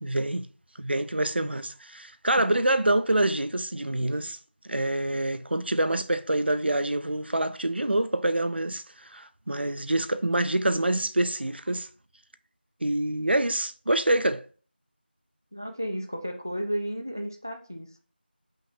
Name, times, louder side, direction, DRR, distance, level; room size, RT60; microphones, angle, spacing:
voice 1, 0.0-0.5 0.8-4.4 4.6-11.9 12.8-14.5, right 1 dB, 70° right, 0.5 m, -26 dB
voice 2, 15.5-18.0, equal, 20° right, 0.4 m, -33 dB
5.6 x 2.6 x 3.4 m
figure-of-eight pair, 175°, 6 cm